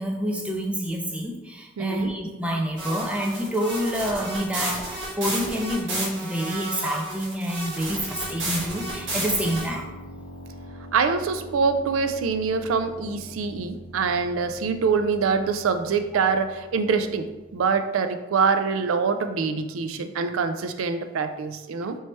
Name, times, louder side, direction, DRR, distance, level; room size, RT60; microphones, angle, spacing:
voice 1, 0.0-9.9, equal, 5° right, 1 dB, 0.4 m, -28 dB
voice 2, 1.8-2.1 10.9-22.0, right 5 dB, 90° right, 8 dB, 0.4 m, -25 dB
sound 1, 2.8-9.7, right 1 dB, 65° right, 1.4 m, -32 dB
sound 2, 8.1-17.7, equal, 55° left, 0.6 m, -44 dB
3.2 x 3.0 x 4.3 m, 1.1 s
head